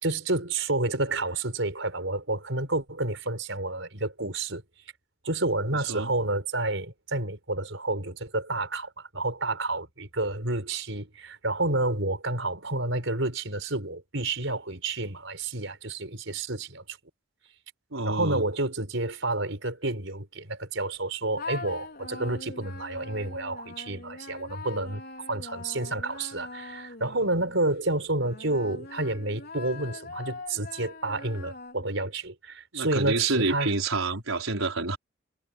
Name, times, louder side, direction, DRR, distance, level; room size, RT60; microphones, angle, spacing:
voice 1, 0.0-4.6 5.2-17.0 18.0-25.0 25.3-33.7, right 2 dB, 65° right, 5.6 m, -30 dB
voice 2, 5.7-6.1 17.9-18.5 32.7-35.0, right 3 dB, 90° right, 4.9 m, -28 dB
sound 1, 21.4-27.6 28.2-32.1, left 3 dB, 50° left, 5.2 m, -42 dB
head